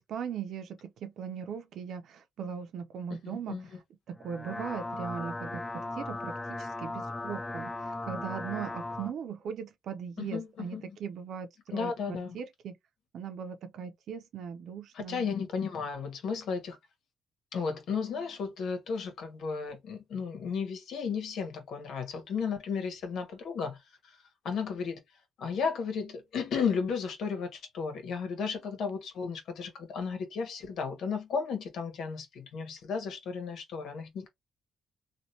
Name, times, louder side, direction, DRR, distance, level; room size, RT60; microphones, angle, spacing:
voice 1, 0.0-3.6 4.1-7.7 8.1-11.9 12.3-12.7 13.1-15.3, right 7 dB, 70° right, 0.7 m, -39 dB
voice 2, 3.2-3.7 10.2-11.0 11.7-12.4 14.9-16.8 17.5-24.2 24.4-25.0 25.4-34.3, left 5 dB, 70° left, 1.3 m, -34 dB
sound 1, 4.2-9.1, left 2 dB, 15° left, 0.3 m, -37 dB
3.2 x 2.5 x 2.8 m
cardioid pair, 90°, 0 cm